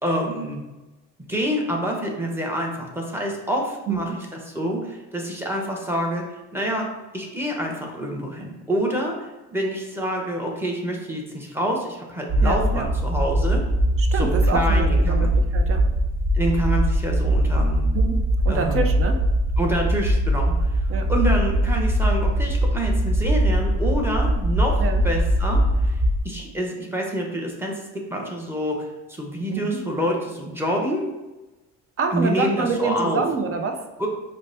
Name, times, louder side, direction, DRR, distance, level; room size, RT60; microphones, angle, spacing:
voice 1, 0.0-0.6 1.3-6.2 6.5-13.6 14.1-15.3 16.3-17.9 18.5-18.8 19.6-26.0 26.2-31.1 32.1-33.2 34.0-34.1, equal, 5° right, -1 dB, 1.0 m, -27 dB
sound 1, 12.3-26.2, right 1 dB, 60° right, 1.4 m, -21 dB
voice 2, 12.4-12.9 14.0-15.9 17.9-18.2 18.4-19.2 20.9-21.1 24.8-25.0 29.5-29.8 32.0-33.8, right 4 dB, 40° right, 5 dB, 0.6 m, -26 dB
5.0 x 2.2 x 2.7 m, 1.1 s
supercardioid pair, 70°, 37 cm